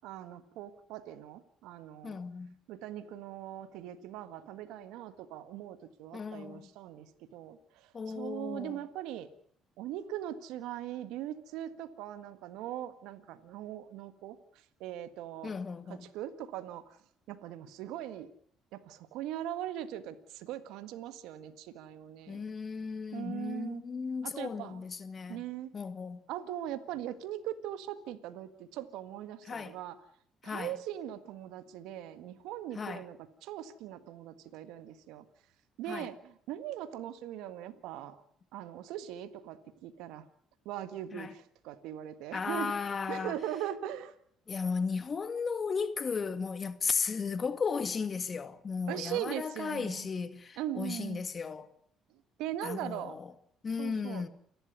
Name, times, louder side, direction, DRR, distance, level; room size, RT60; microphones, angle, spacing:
voice 1, 0.0-2.2 2.7-9.3 9.8-14.4 14.8-15.5 15.9-17.0 17.3-18.3 18.7-22.4 23.1-23.8 24.2-24.8 25.3-25.7 26.3-30.0 30.4-35.2 35.8-38.2 38.5-40.3 40.6-42.7 43.1-44.1 48.9-50.1 50.6-51.2 52.4-53.1 53.8-54.2, right 11 dB, 75° right, 1.7 m, -40 dB
voice 2, 2.0-2.6 6.1-6.7 7.9-8.8 15.4-16.1 22.3-25.4 25.7-26.2 29.5-29.8 30.4-30.7 32.7-33.0 35.9-36.1 41.1-41.3 42.3-43.4 44.5-51.7 52.6-53.3 53.6-54.3, left 5 dB, 40° left, 2.2 m, -35 dB
29.0 x 12.0 x 9.6 m
supercardioid pair, 70°, 0 cm